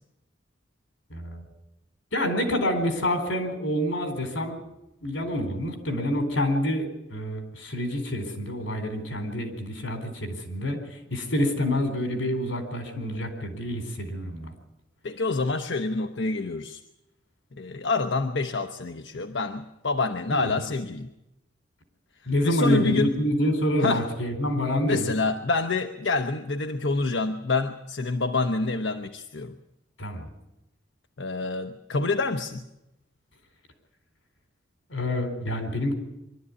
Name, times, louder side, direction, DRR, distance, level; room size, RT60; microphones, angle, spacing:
voice 1, 1.1-1.4 2.1-4.6 5.0-10.8 11.1-14.5 20.3-20.5 22.3-25.1 30.0-30.3 34.9-36.0, left 1 dB, 85° left, 6 dB, 4.2 m, -27 dB
voice 2, 15.0-16.8 17.5-21.1 22.4-23.2 23.8-24.1 24.8-29.5 31.2-32.6, left 3 dB, 65° left, 6 dB, 0.9 m, -27 dB
23.5 x 12.5 x 9.7 m, 0.90 s
head